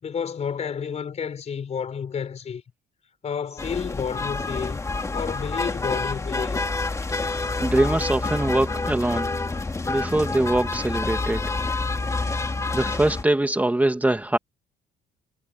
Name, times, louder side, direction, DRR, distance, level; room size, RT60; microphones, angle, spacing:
voice 1, 0.0-2.6 3.2-4.8 5.1-6.6, left 7 dB, 40° left, 4.7 m, -30 dB
sound 1, 3.6-13.2, left 3 dB, 20° left, 2.5 m, -28 dB
voice 2, 7.6-9.3 9.9-11.4 12.7-14.4, right 1 dB, 10° right, 2.2 m, -22 dB
cardioid pair, 110°, 17 cm